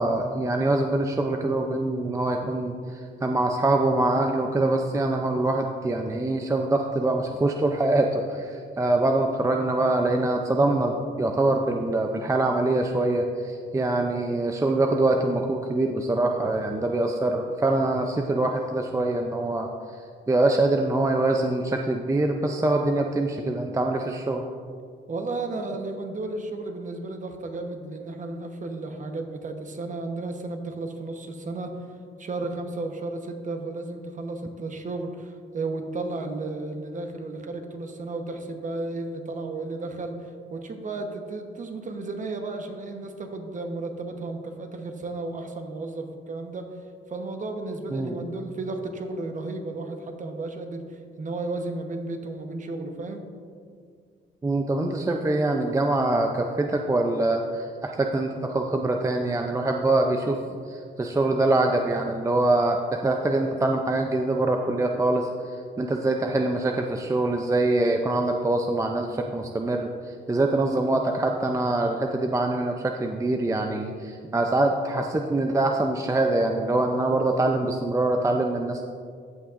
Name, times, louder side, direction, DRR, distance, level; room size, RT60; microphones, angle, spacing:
voice 1, 0.0-19.7 20.3-24.4 47.9-48.2 54.4-60.4 60.7-78.8, right 2 dB, 15° right, 3 dB, 0.5 m, -24 dB
voice 2, 25.1-31.7 32.2-46.7 47.1-53.2, right 2 dB, 40° right, 5 dB, 1.0 m, -33 dB
15.0 x 5.8 x 2.5 m, 2.1 s
cardioid pair, 90°, 20 cm